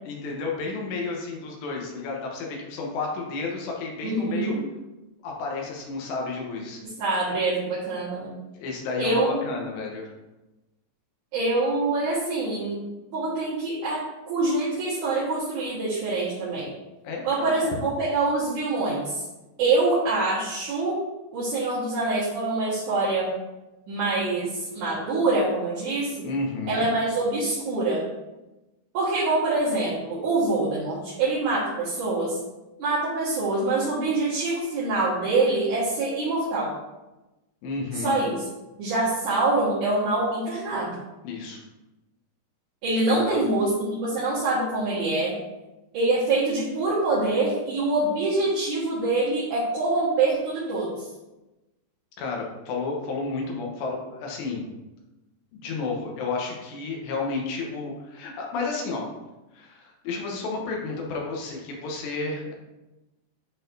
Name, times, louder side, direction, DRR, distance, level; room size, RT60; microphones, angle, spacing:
voice 1, 0.0-4.5 5.2-6.8 8.5-10.1 17.0-17.6 26.2-26.9 37.6-38.1 41.2-41.6 43.1-43.4 52.2-54.6 55.5-59.1 59.5-62.5, left 3 dB, 80° left, -1 dB, 3.2 m, -31 dB
voice 2, 4.0-4.6 7.0-8.3 9.0-9.5 11.3-12.8 13.1-14.0 14.3-16.7 17.2-19.2 19.6-21.0 21.3-23.3 23.9-26.1 26.7-28.0 28.9-32.4 32.8-36.7 37.9-38.3 38.8-41.0 42.8-45.3 45.9-51.1, right 2 dB, 55° right, -10 dB, 2.6 m, -25 dB
10.5 x 4.1 x 2.7 m, 1.0 s
omnidirectional pair, 5.0 m